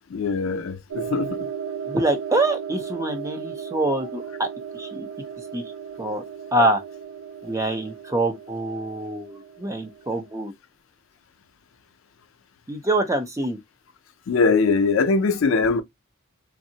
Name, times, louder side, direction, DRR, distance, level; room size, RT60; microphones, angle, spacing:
voice 1, 0.1-1.5 14.3-15.8, left 4 dB, 70° left, 0.4 m, -21 dB
sound 1, 0.9-10.4, right 7 dB, 85° right, 0.5 m, -36 dB
voice 2, 1.9-4.5 4.7-5.1 5.5-5.6 6.0-6.2 6.5-6.8 7.4-10.5 12.7-13.6, right 2 dB, 15° right, 0.6 m, -25 dB
3.5 x 2.0 x 2.7 m
head